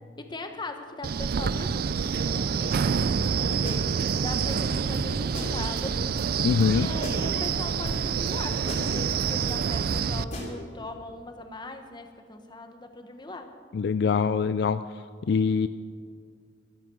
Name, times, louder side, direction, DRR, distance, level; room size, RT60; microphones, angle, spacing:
voice 1, 0.2-6.2 6.7-13.5, left 2 dB, 25° left, 6 dB, 1.3 m, -40 dB
Wind, 1.0-10.2, right 6 dB, 55° right, 0.4 m, -27 dB
sound 1, 3.2-4.1 4.5-6.3 6.6-7.5 7.8-9.6 9.9-10.5, equal, 45° left, 3.4 m, -37 dB
voice 2, 6.4-6.9 13.7-14.8 15.2-15.7, left 5 dB, 60° left, 13 dB, 0.4 m, -23 dB
13.5 x 13.0 x 6.3 m, 2.2 s
head